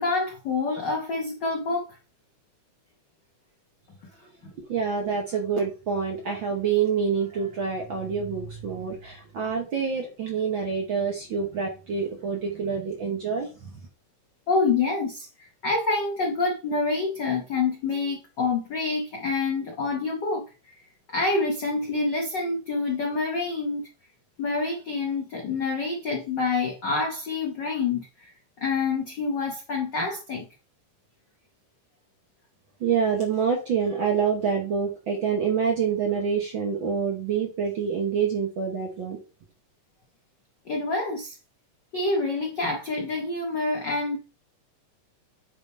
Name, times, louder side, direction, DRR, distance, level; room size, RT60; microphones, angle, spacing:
voice 1, 0.0-2.0 14.5-23.8 24.4-28.3 28.6-30.5 40.6-41.4 41.9-44.2, left 3 dB, 90° left, 0.9 m, -27 dB
voice 2, 4.5-13.7 32.8-39.2, right 6 dB, 65° right, 1.3 m, -27 dB
8.8 x 3.6 x 4.1 m
omnidirectional pair, 3.6 m